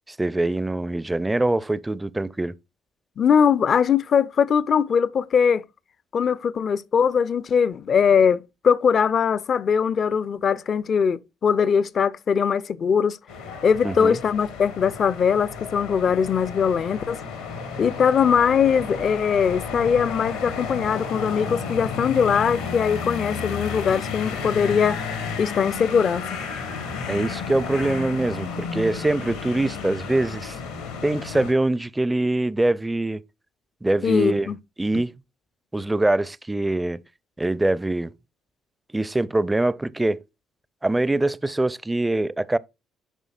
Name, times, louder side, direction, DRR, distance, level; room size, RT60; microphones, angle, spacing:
voice 1, 0.1-2.6 13.8-14.2 27.1-30.6 31.0-33.2 33.8-34.5 34.8-35.1 35.7-37.0 37.4-38.1 38.9-40.2 40.8-42.6, right 2 dB, 15° right, 0.4 m, -23 dB
voice 2, 3.2-5.6 6.1-13.2 13.6-17.2 17.8-25.0 25.4-26.3 34.0-34.6 34.9-35.0, left 7 dB, 50° left, 0.4 m, -21 dB
sound 1, 13.3-31.5, left 5 dB, 85° left, 1.7 m, -32 dB
10.0 x 5.1 x 2.4 m
hypercardioid pair, 50°, 0 cm